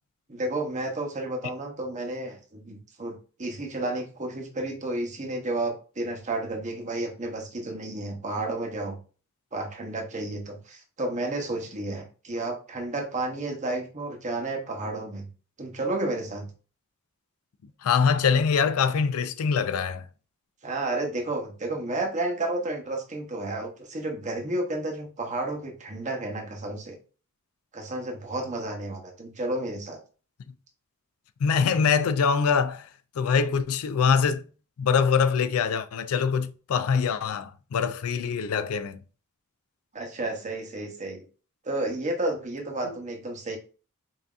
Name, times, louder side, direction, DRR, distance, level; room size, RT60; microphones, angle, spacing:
voice 1, 0.3-9.0 9.5-15.3 15.6-16.5 20.6-27.0 27.7-30.0 39.9-41.3 41.6-43.6, right 2 dB, 35° right, 0.9 m, -31 dB
voice 2, 17.8-20.1 31.4-32.9 33.2-34.4 34.8-39.0 42.8-43.0, left 6 dB, 80° left, 0.4 m, -24 dB
5.5 x 2.7 x 2.4 m
head